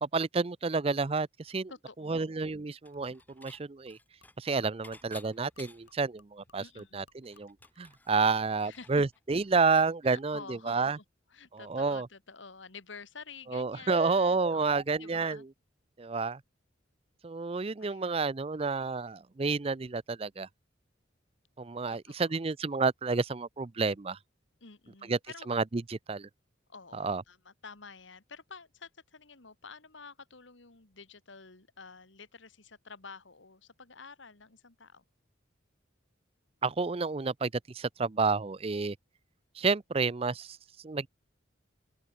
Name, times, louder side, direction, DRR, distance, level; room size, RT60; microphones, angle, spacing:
voice 1, 0.0-1.7 2.0-4.0 4.4-11.0 11.5-12.1 13.5-15.4 16.0-16.4 17.2-20.5 21.6-24.2 25.1-25.2 25.5-26.3 26.9-27.2 36.6-39.0 39.6-40.6 40.8-41.1, right 4 dB, 30° right, 0.5 m, -30 dB
voice 2, 1.7-2.3 6.6-7.0 8.6-8.9 10.0-11.0 11.3-15.5 17.8-18.3 21.9-22.5 24.6-25.5 26.7-35.0, left 4 dB, 70° left, 2.1 m, -50 dB
Dishes pots and pans / Chink clink, 2.8-3.6 3.9-6.0 6.4-6.5 6.8-9.9, left 2 dB, 10° left, 1.6 m, -55 dB
Gurgling / Liquid, 2.9-9.8, left 3 dB, 85° left, 5.8 m, -67 dB
open air
head